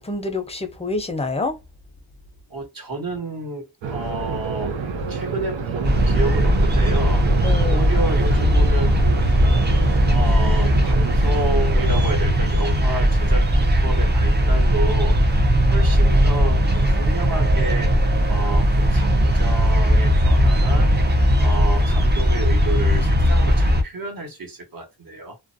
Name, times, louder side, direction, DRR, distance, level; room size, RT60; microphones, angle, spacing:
voice 1, 0.0-1.6 7.4-7.9, left 3 dB, 15° left, 0.6 m, -27 dB
voice 2, 2.5-4.8 5.1-9.0 10.1-15.4 15.7-17.9 18.3-20.9 21.4-25.4, right 2 dB, 50° right, 1.3 m, -30 dB
sound 1, 3.8-12.1, right 5 dB, 85° right, 0.7 m, -28 dB
sound 2, 5.8-23.8, equal, 25° right, 0.6 m, -18 dB
2.4 x 2.1 x 2.6 m
cardioid pair, 60°, 44 cm